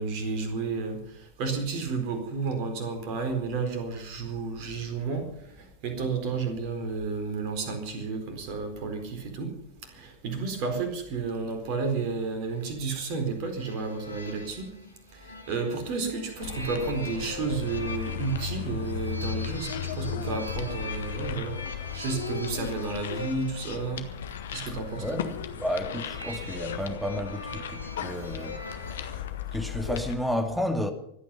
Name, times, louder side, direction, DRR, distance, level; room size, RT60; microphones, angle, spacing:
voice 1, 0.0-9.5 9.8-14.7 15.1-21.6 21.9-24.1 24.5-25.2, right 4 dB, 45° right, 4.2 m, -32 dB
sound 1, 12.5-29.0, left 2 dB, 80° left, 2.0 m, -42 dB
sound 2, 16.4-30.1, left 9 dB, 60° left, 1.5 m, -36 dB
voice 2, 25.0-28.6 28.9-29.3 29.5-30.9, left 1 dB, 5° right, 2.3 m, -32 dB
24.5 x 9.5 x 5.8 m
figure-of-eight pair, 90°, 0 cm